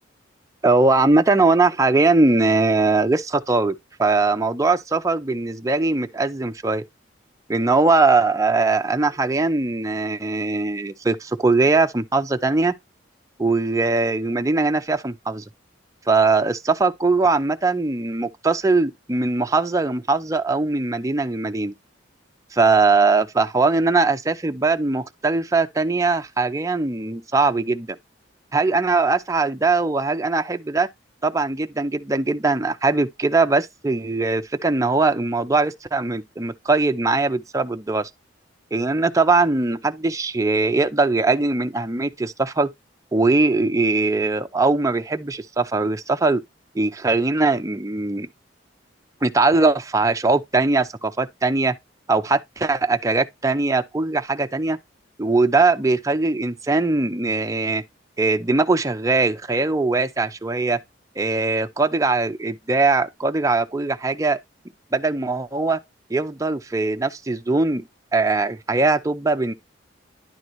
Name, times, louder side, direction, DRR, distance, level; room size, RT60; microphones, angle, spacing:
voice 1, 0.6-6.8 7.5-12.7 13.4-15.4 16.1-21.7 22.5-28.0 28.5-30.9 31.2-38.1 38.7-42.7 43.1-46.4 46.7-48.3 49.2-51.7 52.1-54.8 55.2-57.8 58.2-60.8 61.2-64.4 64.9-65.8 66.1-67.8 68.1-69.5, right 3 dB, 15° right, 0.5 m, -20 dB
10.5 x 3.9 x 3.0 m
head